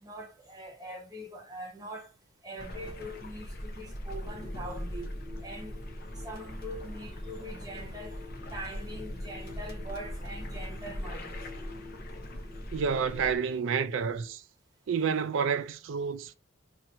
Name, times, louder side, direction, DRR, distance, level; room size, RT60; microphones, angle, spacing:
voice 1, 0.0-2.1 2.4-5.1 5.4-5.8 6.2-8.2 8.5-11.4, right 1 dB, 20° right, 0.9 m, -42 dB
sound 1, 2.6-13.4, equal, 50° left, 0.6 m, -40 dB
sound 2, 4.1-14.3, left 3 dB, 10° left, 1.0 m, -50 dB
voice 2, 12.7-14.4 14.9-16.3, right 6 dB, 70° right, 0.4 m, -29 dB
2.8 x 2.5 x 4.3 m
head